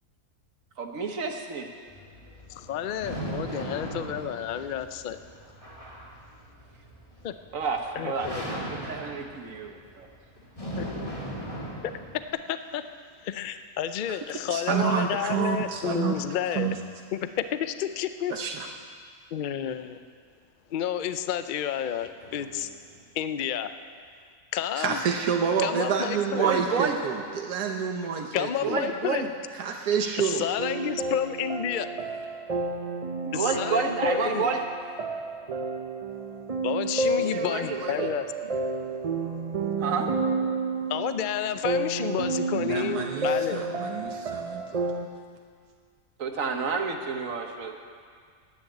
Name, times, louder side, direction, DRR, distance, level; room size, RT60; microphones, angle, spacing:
voice 1, 0.8-1.7 7.5-10.1 26.3-27.0 28.6-29.3 33.2-34.6 37.2-38.1 39.8-40.1 46.2-47.7, right 5 dB, 60° right, 3 dB, 1.5 m, -30 dB
sound 1, 1.9-12.3, right 1 dB, 20° left, 2.0 m, -38 dB
voice 2, 2.5-5.3 7.2-7.3 7.9-8.4 10.8-10.9 12.5-12.8 13.2-16.7 17.1-18.3 19.3-20.0 20.7-22.7 23.1-23.7 24.5-25.0 25.6-26.5 28.3-29.3 30.2-31.9 33.3-34.5 36.6-38.5 38.8-39.1 39.6-39.7 40.9-43.6, left 9 dB, 80° left, 11 dB, 0.4 m, -30 dB
voice 3, 10.4-11.8 22.0-23.2, right 1 dB, 40° left, -5 dB, 3.2 m, -52 dB
voice 4, 14.5-16.1 16.5-16.8 18.3-18.7 24.8-28.8 29.6-30.5 42.5-44.9, right 7 dB, 85° right, 2 dB, 1.4 m, -28 dB
sound 2, 30.6-45.1, right 3 dB, 40° right, 0.5 m, -31 dB
11.0 x 9.7 x 8.6 m, 2.1 s
omnidirectional pair, 1.6 m